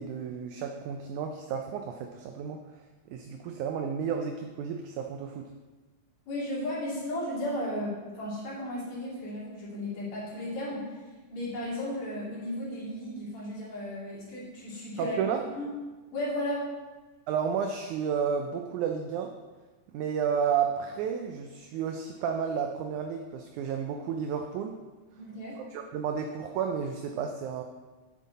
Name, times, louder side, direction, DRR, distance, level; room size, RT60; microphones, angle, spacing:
voice 1, 0.0-2.6 3.1-5.5 15.0-15.5 17.3-19.3 19.9-24.8 25.6-27.6, right 7 dB, 80° right, 4 dB, 1.9 m, -32 dB
voice 2, 6.3-10.9 11.3-15.2 15.5-15.7 16.1-16.7 25.2-25.6, left 1 dB, 55° left, -7 dB, 4.2 m, -34 dB
9.1 x 8.5 x 4.1 m, 1.3 s
omnidirectional pair, 3.8 m